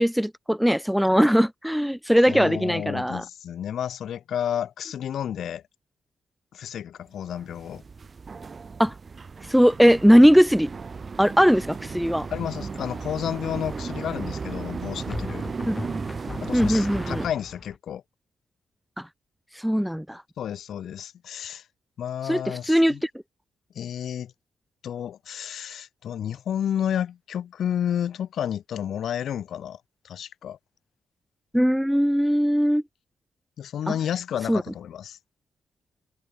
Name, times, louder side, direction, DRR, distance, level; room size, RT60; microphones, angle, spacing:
voice 1, 0.0-3.2 8.8-8.9 9.5-10.7 11.2-12.3 15.7-15.8 16.5-17.3 19.0-19.1 19.5-20.2 22.2-23.1 31.5-32.8 33.9-34.0 34.5-34.6, equal, ahead, 0.3 m, -20 dB
voice 2, 2.3-5.6 6.5-7.8 12.3-15.5 16.4-18.0 20.4-21.6 22.0-23.0 23.8-24.3 24.8-29.8 30.0-30.6 33.6-35.2, left 9 dB, 60° left, 1.9 m, -31 dB
sound 1, 7.3-17.3, right 5 dB, 30° right, 1.3 m, -35 dB
sound 2, 12.4-12.9 15.1-17.8, left 3 dB, 20° left, 5.1 m, -37 dB
cardioid pair, 145°, 0 cm